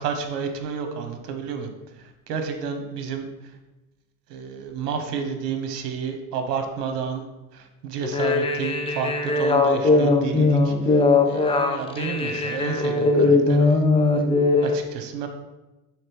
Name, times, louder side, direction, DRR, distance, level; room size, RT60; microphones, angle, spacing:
voice 1, 0.0-1.7 2.0-3.3 4.3-7.3 7.5-13.8 14.6-15.3, right 6 dB, 85° right, 6 dB, 1.0 m, -30 dB
sound 1, 8.0-14.7, left 3 dB, 15° left, 0.5 m, -20 dB
6.4 x 3.4 x 4.6 m, 1.0 s
hypercardioid pair, 95°, 47 cm